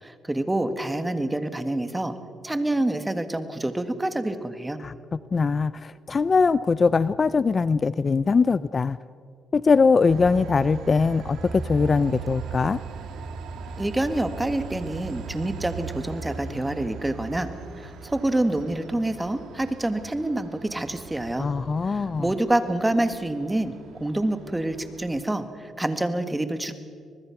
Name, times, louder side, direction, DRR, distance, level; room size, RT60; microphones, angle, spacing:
voice 1, 0.0-2.1 2.4-4.8 13.8-17.5 17.8-21.5 21.8-23.7 24.0-26.7, right 1 dB, 10° right, 9 dB, 1.6 m, -27 dB
voice 2, 5.3-9.0 9.5-12.8 21.4-22.3, left 4 dB, 35° left, 17 dB, 0.4 m, -21 dB
Train, 10.0-25.2, right 5 dB, 80° right, 1.8 m, -39 dB
24.0 x 20.5 x 5.9 m, 2.2 s
cardioid pair, 90°, 0 cm